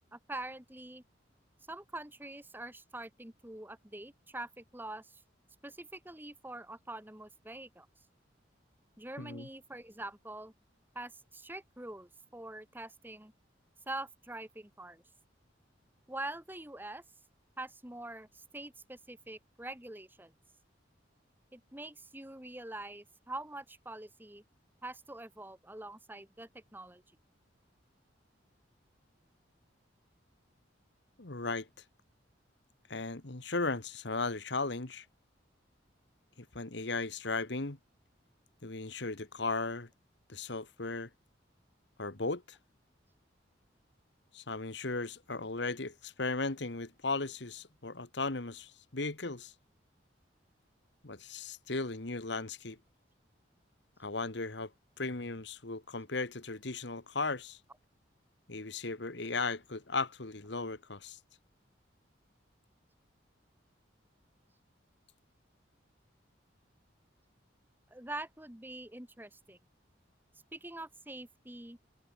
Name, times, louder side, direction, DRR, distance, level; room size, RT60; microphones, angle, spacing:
voice 1, 0.1-1.0 1.7-5.2 5.6-7.9 9.0-10.5 10.9-13.3 13.9-15.0 16.1-17.0 17.6-20.3 21.5-24.4 24.8-27.0 67.9-69.6 70.5-71.8, right 2 dB, 10° right, 2.3 m, -44 dB
voice 2, 9.2-9.5 31.2-31.7 32.9-35.0 36.4-37.8 38.6-39.9 40.3-41.1 42.0-42.6 44.3-49.5 51.0-52.8 54.0-54.7 55.0-57.6 58.5-61.2, left 3 dB, 65° left, 1.6 m, -36 dB
head